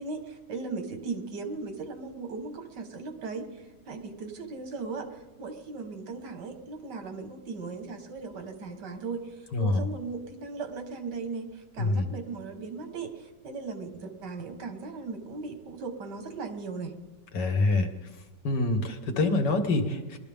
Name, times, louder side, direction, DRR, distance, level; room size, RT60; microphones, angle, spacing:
voice 1, 0.0-17.0, right 4 dB, 80° right, 6 dB, 2.0 m, -38 dB
voice 2, 9.5-9.9 11.8-12.1 17.3-17.9 18.4-20.2, left 2 dB, 85° left, 6 dB, 1.9 m, -26 dB
21.0 x 12.5 x 3.5 m, 1.1 s
omnidirectional pair, 1.8 m